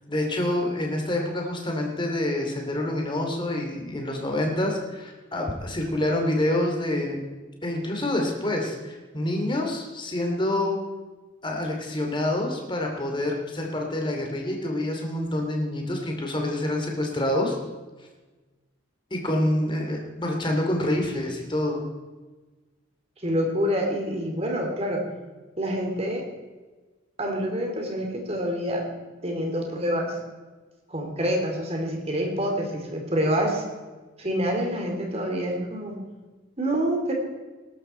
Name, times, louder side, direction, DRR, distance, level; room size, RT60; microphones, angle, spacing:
voice 1, 0.1-7.2 7.6-10.8 11.4-17.6 19.1-21.8, left 1 dB, 25° left, 1 dB, 2.8 m, -27 dB
voice 2, 23.2-25.0 25.6-26.2 27.2-28.8 29.2-30.2 30.9-33.6 34.2-36.0 36.6-37.1, equal, 30° right, 1 dB, 3.0 m, -27 dB
19.5 x 12.5 x 4.5 m, 1.3 s
head